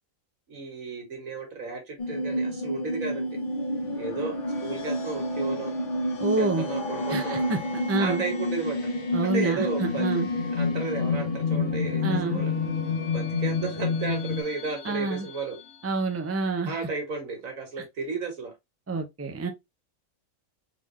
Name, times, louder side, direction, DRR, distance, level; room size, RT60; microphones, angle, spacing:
voice 1, 0.5-3.3 4.0-4.4 4.6-5.7 6.4-7.4 8.0-8.9 9.2-10.1 10.6-12.5 13.1-15.6 16.7-18.5, right 4 dB, 85° right, 2.0 m, -33 dB
sound 1, 2.0-14.4, left 2 dB, 45° left, 0.9 m, -29 dB
sound 2, 3.8-16.3, left 4 dB, 65° left, 1.5 m, -41 dB
voice 2, 6.2-6.7 7.1-7.6 7.9-8.2 9.1-10.3 12.0-12.4 14.8-15.3 15.8-16.8 18.9-19.5, right 3 dB, 15° right, 0.5 m, -28 dB
3.9 x 3.5 x 3.0 m
omnidirectional pair, 1.4 m